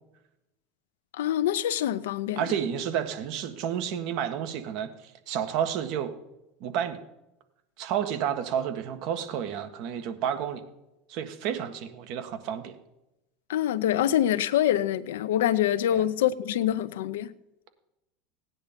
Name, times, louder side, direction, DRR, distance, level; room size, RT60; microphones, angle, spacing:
voice 1, 1.1-2.4 13.5-17.3, left 11 dB, 80° left, 0.7 m, -25 dB
voice 2, 2.3-6.1 6.6-7.0 7.8-10.6 11.1-12.7 15.9-16.1, right 9 dB, 60° right, 1.6 m, -31 dB
16.5 x 9.8 x 5.2 m
hypercardioid pair, 95°, 0 cm